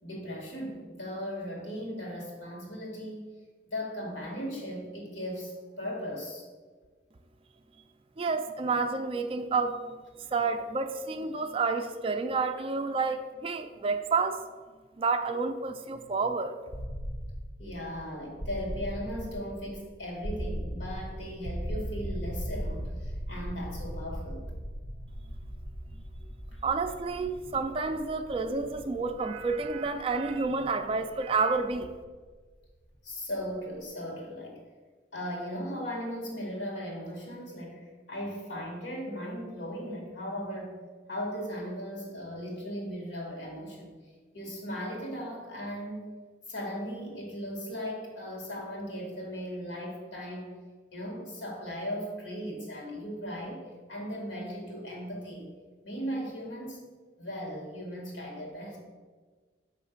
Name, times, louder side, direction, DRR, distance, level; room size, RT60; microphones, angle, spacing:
voice 1, 0.0-3.3 3.6-6.4 17.6-24.4 26.5-26.6 33.0-34.6 35.1-40.7 41.1-44.0 44.3-46.1 46.5-50.5 50.9-55.5 55.8-56.8 57.2-58.8, equal, 85° left, -1 dB, 1.9 m, -37 dB
voice 2, 8.2-10.0 10.3-14.4 15.0-16.6 26.6-31.9, right 4 dB, 30° right, 8 dB, 0.3 m, -29 dB
sound 1, 16.7-32.6, equal, 30° left, 0.6 m, -39 dB
5.8 x 3.1 x 5.7 m, 1.4 s
head